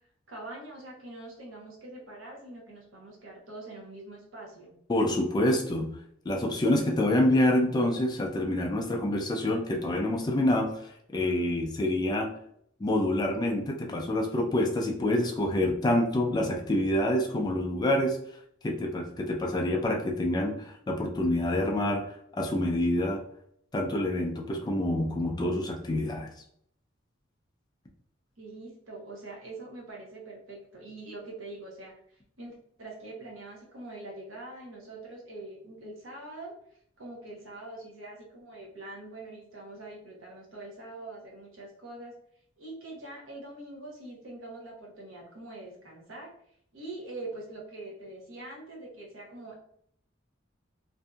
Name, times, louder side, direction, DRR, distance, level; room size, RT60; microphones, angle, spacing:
voice 1, 0.3-4.7 28.4-42.1 42.6-46.3 46.7-49.6, right 2 dB, 80° right, -1 dB, 0.9 m, -44 dB
voice 2, 4.9-5.9 6.3-10.7 11.1-12.3 12.8-18.2 18.6-22.0 22.3-23.2 23.7-26.3, left 1 dB, 20° left, 2 dB, 0.3 m, -27 dB
2.6 x 2.6 x 2.3 m, 0.67 s
head